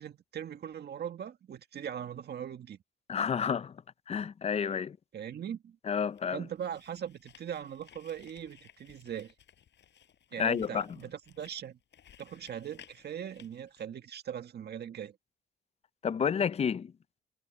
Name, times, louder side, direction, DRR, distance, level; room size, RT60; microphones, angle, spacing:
voice 1, 0.0-2.8 5.1-5.8 6.3-9.3 10.3-11.8 12.2-15.2, right 9 dB, 55° right, 1.8 m, -40 dB
voice 2, 3.1-3.8 4.1-5.0 5.9-6.4 10.4-10.9 16.0-16.9, left 7 dB, 30° left, 0.5 m, -30 dB
sound 1, 6.1-13.8, left 9 dB, 65° left, 6.5 m, -59 dB
cardioid pair, 90°, 20 cm